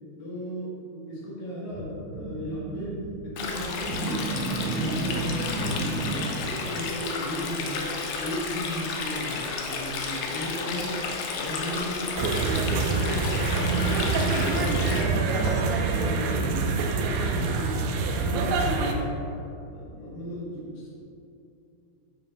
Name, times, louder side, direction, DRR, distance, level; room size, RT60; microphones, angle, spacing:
voice 1, 0.2-19.2 19.7-20.9, equal, 60° left, -6 dB, 3.1 m, -35 dB
sound 1, 1.7-6.9, right 3 dB, 60° right, 2.2 m, -32 dB
Stream, 3.4-15.0, left 4 dB, 90° left, 2.1 m, -32 dB
sound 2, 12.2-18.9, right 4 dB, 85° right, 2.5 m, -25 dB
9.3 x 8.7 x 2.5 m, 2.7 s
omnidirectional pair, 5.3 m